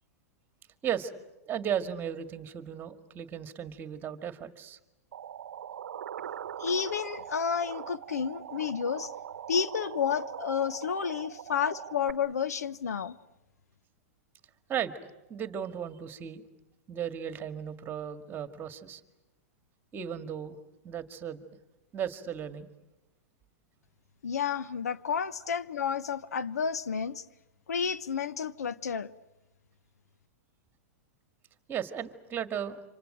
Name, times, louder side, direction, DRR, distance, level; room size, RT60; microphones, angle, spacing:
voice 1, 1.4-4.8 14.7-16.4 16.9-19.0 19.9-20.6 20.8-21.4 21.9-22.7 31.7-32.8, right 9 dB, 25° right, 2.0 m, -35 dB
sound 1, 5.1-12.1, right 9 dB, 75° right, 0.9 m, -41 dB
voice 2, 6.6-9.1 9.5-13.2 24.2-27.2 27.7-29.1, left 7 dB, 85° left, 1.0 m, -31 dB
27.0 x 26.0 x 8.0 m
hypercardioid pair, 120°, 8 cm